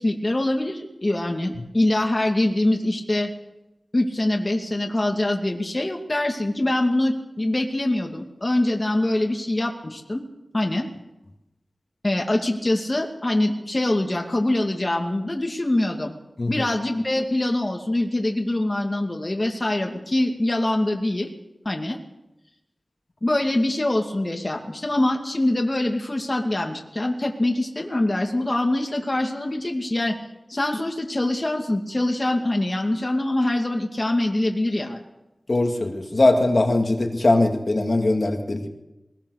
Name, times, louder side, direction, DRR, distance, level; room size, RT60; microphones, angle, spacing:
voice 1, 0.0-3.3 3.9-10.2 10.5-10.9 12.0-16.1 16.5-21.3 21.6-22.0 23.2-30.2 30.5-35.0, left 1 dB, 35° left, 2 dB, 2.4 m, -24 dB
voice 2, 35.5-38.7, left 2 dB, 50° left, 3 dB, 2.5 m, -21 dB
21.0 x 20.0 x 6.6 m, 0.96 s
wide cardioid pair, 80°, 0 cm